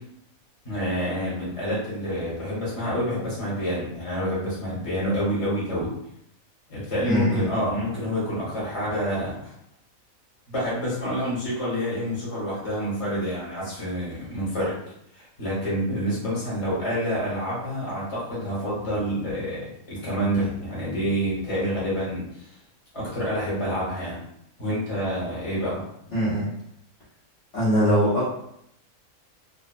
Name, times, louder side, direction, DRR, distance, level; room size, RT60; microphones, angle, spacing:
voice 1, 0.6-5.9 6.7-9.5 10.5-14.7 15.1-22.5 22.9-24.2 24.6-25.8, equal, 25° left, -7 dB, 1.1 m, -28 dB
voice 2, 7.0-7.5 26.1-26.5 27.5-28.3, equal, 60° left, -10 dB, 1.1 m, -22 dB
2.7 x 2.2 x 2.3 m, 0.75 s
omnidirectional pair, 1.4 m